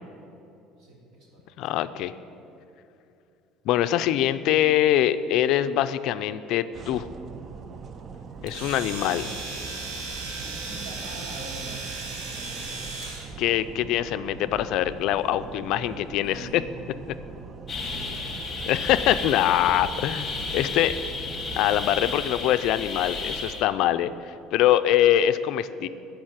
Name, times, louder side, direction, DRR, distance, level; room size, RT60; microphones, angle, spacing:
voice 1, 0.8-1.5 9.0-9.4 10.4-12.7 16.2-16.6 17.5-18.3, right 1 dB, 50° right, -1 dB, 2.8 m, -44 dB
voice 2, 1.6-2.1 3.7-7.1 8.4-9.2 13.4-16.6 18.7-21.0 21.6-24.1 24.5-25.9, left 12 dB, 60° left, 12 dB, 0.4 m, -23 dB
sound 1, 6.7-21.8, right 5 dB, 30° right, 0.5 m, -42 dB
Domestic sounds home sounds, 8.5-13.3, right 3 dB, 75° right, 1.7 m, -36 dB
sound 2, 17.7-23.6, left 4 dB, 20° left, 1.3 m, -33 dB
13.5 x 4.8 x 8.9 m, 2.7 s
cardioid pair, 145°, 0 cm